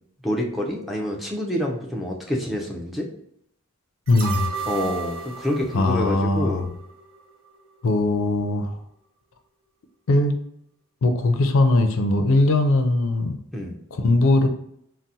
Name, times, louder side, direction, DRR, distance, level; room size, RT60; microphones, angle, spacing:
voice 1, 0.2-3.1 4.7-6.7 13.5-13.7, left 1 dB, ahead, -2 dB, 0.4 m, -27 dB
voice 2, 4.1-4.5 5.7-6.7 7.8-8.8 10.1-10.3 11.0-13.4 13.9-14.5, left 2 dB, 65° left, 7 dB, 0.4 m, -20 dB
sound 1, 4.1-7.2 7.5-7.6, right 5 dB, 65° right, 0.8 m, -34 dB
3.8 x 2.0 x 2.7 m, 0.71 s
head